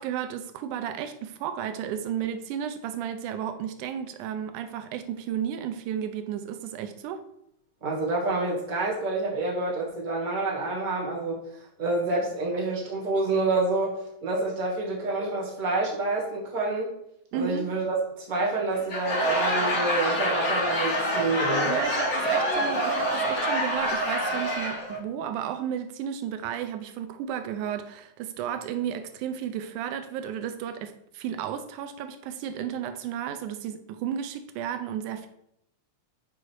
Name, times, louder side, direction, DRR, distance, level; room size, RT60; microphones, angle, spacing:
voice 1, 0.0-7.2 17.3-17.7 21.7-35.3, right 9 dB, 85° right, 2.1 m, -33 dB
voice 2, 7.8-11.4 11.8-16.9 17.3-21.7, right 2 dB, 20° right, 1.4 m, -28 dB
Laughter / Crowd, 18.7-25.0, equal, 55° left, 3.0 m, -26 dB
6.9 x 4.9 x 4.6 m
omnidirectional pair, 3.5 m